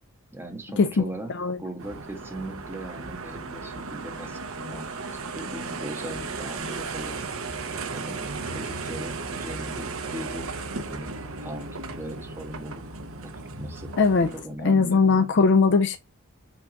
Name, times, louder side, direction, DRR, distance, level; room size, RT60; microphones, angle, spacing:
voice 1, 0.3-1.3 1.6-5.1 5.3-7.6 7.9-10.5 10.8-13.3 13.6-13.9 14.3-15.0, right 1 dB, 10° right, 1.5 m, -39 dB
sound 1, 1.8-14.4, right 3 dB, 70° right, 1.0 m, -35 dB
voice 2, 14.0-14.3 14.6-16.0, left 4 dB, 55° left, 0.5 m, -20 dB
5.9 x 3.8 x 5.1 m
head